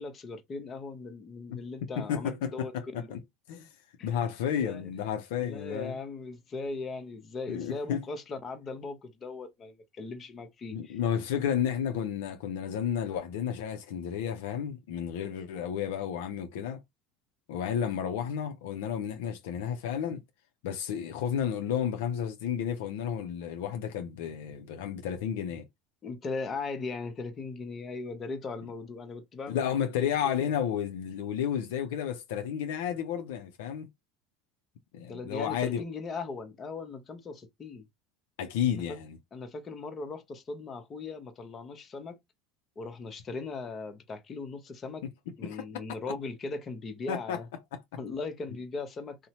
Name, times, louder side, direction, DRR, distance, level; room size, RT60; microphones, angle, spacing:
voice 1, 0.0-3.1 4.0-4.9 5.4-11.0 26.0-30.5 35.1-37.8 38.7-39.0 39.3-42.2 42.8-45.0 45.4-47.5 48.0-49.3, left 3 dB, 35° left, 0.8 m, -39 dB
voice 2, 2.0-3.2 3.5-3.7 4.0-6.0 7.5-8.0 10.7-16.8 17.5-20.2 20.6-25.7 29.5-33.9 34.9-35.8 38.4-39.2 45.4-45.6 47.1-47.4 47.7-47.8, left 8 dB, 80° left, 0.5 m, -32 dB
2.7 x 2.1 x 2.9 m
hypercardioid pair, 95°, 0 cm